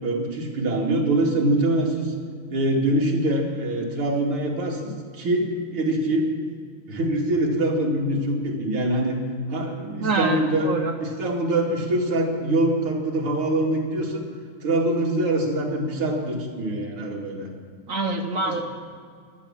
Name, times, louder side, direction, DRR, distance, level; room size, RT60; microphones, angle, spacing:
voice 1, 0.0-2.1 2.5-6.3 6.9-9.2 9.5-10.7 11.0-14.2 14.6-17.5 18.3-18.5, right 1 dB, 80° right, -1 dB, 3.3 m, -24 dB
voice 2, 10.0-10.4 10.6-10.9 17.9-18.6, right 3 dB, 50° right, 5 dB, 1.0 m, -25 dB
15.5 x 12.0 x 7.4 m, 2.1 s
omnidirectional pair, 2.4 m